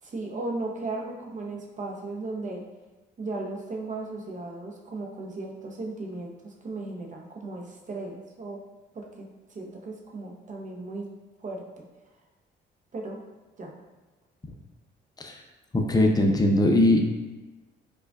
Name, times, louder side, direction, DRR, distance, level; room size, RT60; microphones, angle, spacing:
voice 1, 0.0-2.7 3.2-8.6 8.9-11.1 11.4-11.9 12.9-13.2 13.6-13.8, right 2 dB, 40° right, 1 dB, 0.7 m, -36 dB
voice 2, 15.7-17.0, left 1 dB, 20° left, 2 dB, 0.5 m, -20 dB
4.8 x 2.3 x 2.3 m, 1.2 s
cardioid pair, 90°, 20 cm